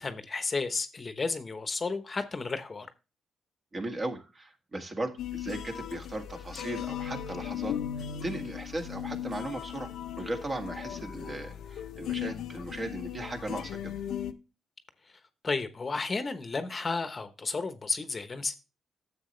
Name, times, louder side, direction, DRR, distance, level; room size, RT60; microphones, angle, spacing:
voice 1, 0.0-2.9 15.1-18.6, left 4 dB, 30° left, 1.0 m, -33 dB
voice 2, 3.7-7.8 8.2-9.9 10.2-13.9, right 2 dB, 30° right, 1.8 m, -37 dB
sound 1, 5.2-14.3, left 10 dB, 80° left, 0.7 m, -37 dB
10.5 x 7.4 x 3.2 m
cardioid pair, 90°, 0 cm